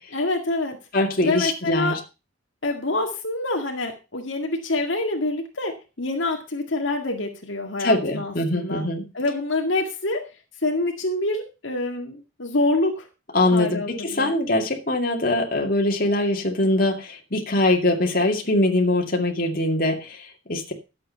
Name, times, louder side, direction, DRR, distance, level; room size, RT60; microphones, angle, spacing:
voice 1, 0.1-0.8 1.2-2.0 2.6-8.9 9.1-10.2 10.6-13.1 13.5-14.3, left 2 dB, 70° left, 2 dB, 1.9 m, -26 dB
voice 2, 0.9-2.0 7.8-9.0 13.3-20.7, left 1 dB, 45° left, 2 dB, 2.4 m, -22 dB
11.5 x 7.8 x 5.5 m, 0.30 s
head